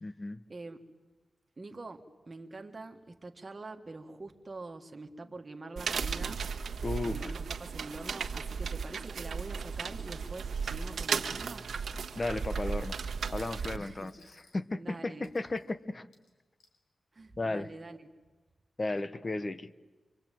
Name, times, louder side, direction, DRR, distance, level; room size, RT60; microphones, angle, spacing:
voice 1, 0.0-0.4 6.8-7.3 12.2-13.0 13.3-14.1 14.5-16.1 17.4-17.7 18.8-19.7, left 2 dB, 25° left, 14 dB, 0.9 m, -34 dB
voice 2, 1.6-6.4 7.0-11.7 13.8-14.1 14.8-15.3 17.1-18.1, right 2 dB, 30° right, 5 dB, 1.8 m, -45 dB
sound 1, 5.8-13.8, right 5 dB, 75° right, 1.5 m, -35 dB
Coin (dropping), 6.9-7.5 7.9-8.4 9.6-10.7 11.3-12.3 13.2-14.6 15.2-15.7 16.1-16.8, left 3 dB, 90° left, 5.5 m, -65 dB
25.5 x 25.0 x 9.2 m, 1.3 s
wide cardioid pair, 140°, 0 cm